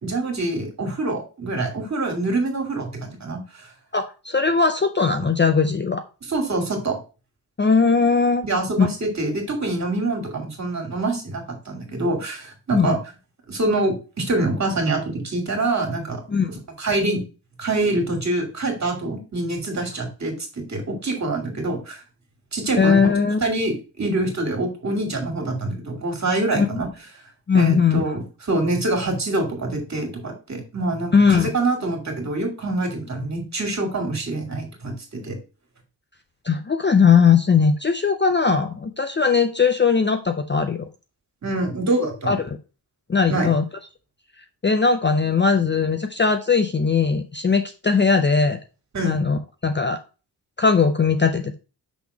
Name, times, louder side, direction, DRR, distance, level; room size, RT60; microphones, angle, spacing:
voice 1, 0.0-3.4 6.3-7.0 8.4-13.0 13.5-16.2 16.8-17.2 17.6-20.3 20.7-22.0 22.5-23.1 23.4-26.9 27.5-28.2 28.5-35.4 41.4-42.4 43.3-43.5 48.9-49.2, right 2 dB, 40° right, 3 dB, 2.2 m, -25 dB
voice 2, 3.9-6.0 7.6-8.4 8.8-8.9 12.7-13.0 16.3-16.5 22.8-23.4 26.6-26.7 27.5-28.2 31.1-31.5 36.4-40.8 42.2-42.4 43.1-43.7 44.6-48.6 49.0-50.0 50.6-51.6, left 5 dB, 25° left, 7 dB, 0.5 m, -19 dB
6.1 x 3.6 x 4.6 m, 0.32 s
wide cardioid pair, 125°, 42 cm